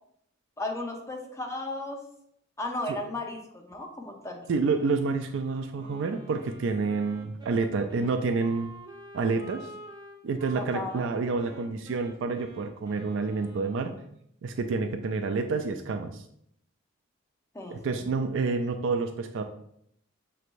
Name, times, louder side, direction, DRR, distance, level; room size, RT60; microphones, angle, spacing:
voice 1, 0.6-2.0 2.6-4.4 10.6-11.1 17.5-17.8, left 2 dB, 15° left, 1 dB, 0.6 m, -35 dB
voice 2, 4.5-8.7 9.1-9.7 10.2-13.9 14.4-16.2 17.7-19.4, right 4 dB, 65° right, 7 dB, 0.3 m, -28 dB
Wind instrument woodwind instrument, 5.7-14.2, right 2 dB, 20° right, 0.7 m, -48 dB
6.5 x 3.1 x 2.5 m, 0.72 s
head